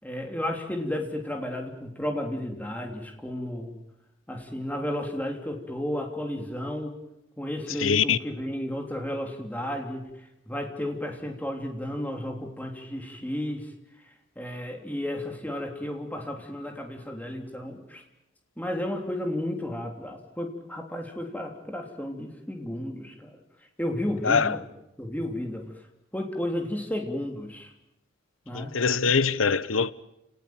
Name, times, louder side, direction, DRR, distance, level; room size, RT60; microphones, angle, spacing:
voice 1, 0.0-3.8 4.3-6.9 7.4-10.1 10.5-13.7 14.3-18.0 18.6-23.3 23.8-24.6 25.0-25.6 26.1-27.7 28.5-28.7, left 1 dB, 10° left, 3.3 m, -33 dB
voice 2, 7.8-8.2 24.2-24.6 28.5-29.9, left 5 dB, 90° left, 0.9 m, -23 dB
30.0 x 19.0 x 9.0 m
head